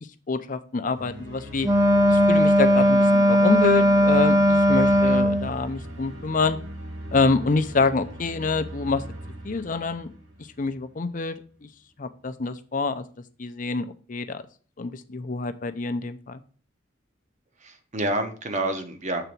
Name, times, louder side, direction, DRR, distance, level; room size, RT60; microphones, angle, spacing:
voice 1, 0.3-1.7 2.1-6.6 7.1-9.0 9.4-10.1 10.6-11.4 11.6-11.7 12.0-13.0 13.4-14.4 14.8-16.4, left 3 dB, 45° left, 9 dB, 0.6 m, -26 dB
sound 1, 0.9-11.0, equal, 85° right, 2.5 m, -39 dB
Wind instrument woodwind instrument, 1.6-5.5, equal, 20° right, 0.6 m, -18 dB
voice 2, 4.8-5.2 17.6-19.2, right 1 dB, 40° right, 7 dB, 1.0 m, -29 dB
6.8 x 4.0 x 6.0 m, 0.40 s
head